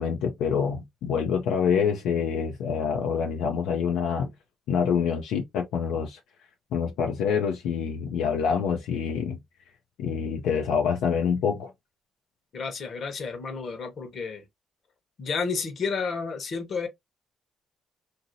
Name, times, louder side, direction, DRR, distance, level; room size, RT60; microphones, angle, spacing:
voice 1, 0.0-4.3 4.7-6.2 6.7-9.4 10.0-11.7, left 7 dB, 90° left, 0.5 m, -26 dB
voice 2, 12.5-14.4 15.2-16.9, left 5 dB, 55° left, 1.0 m, -31 dB
2.8 x 2.6 x 2.6 m
cardioid pair, 90°, 0 cm